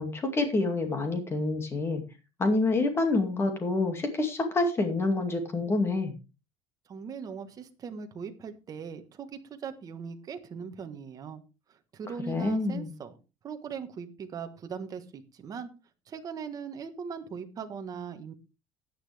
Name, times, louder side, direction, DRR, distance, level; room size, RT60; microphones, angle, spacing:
voice 1, 0.0-2.0 2.4-6.1 12.3-12.9, left 2 dB, 20° left, 6 dB, 2.3 m, -27 dB
voice 2, 6.9-11.4 11.9-13.1 13.4-15.7 16.1-18.3, right 6 dB, 30° right, 7 dB, 1.4 m, -40 dB
13.5 x 9.7 x 3.5 m, 0.29 s
cardioid pair, 170°, 13 cm